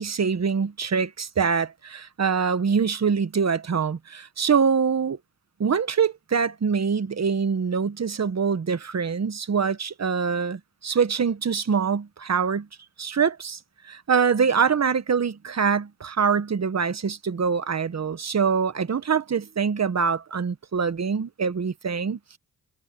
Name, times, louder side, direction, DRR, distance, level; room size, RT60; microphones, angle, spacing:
voice 1, 0.0-5.2 5.6-12.7 13.0-13.6 13.8-22.4, right 6 dB, 45° right, 1.7 m, -24 dB
supercardioid pair, 55°, 37 cm